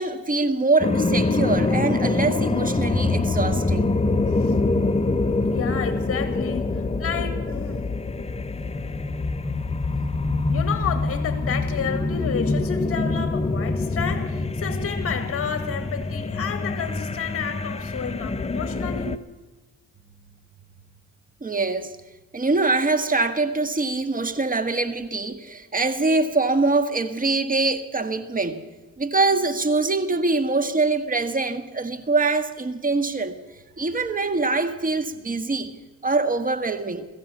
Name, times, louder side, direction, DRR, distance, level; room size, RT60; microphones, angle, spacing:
voice 1, 0.0-3.9 21.4-21.9 22.3-28.6 29.0-33.4 33.8-35.7 36.0-37.1, right 3 dB, 30° right, 1.8 m, -24 dB
sound 1, 0.8-19.2, left 3 dB, 20° left, 0.9 m, -25 dB
voice 2, 5.5-7.9 10.5-19.2, left 7 dB, 50° left, 2.1 m, -31 dB
22.5 x 14.0 x 8.5 m
cardioid pair, 90°, 30 cm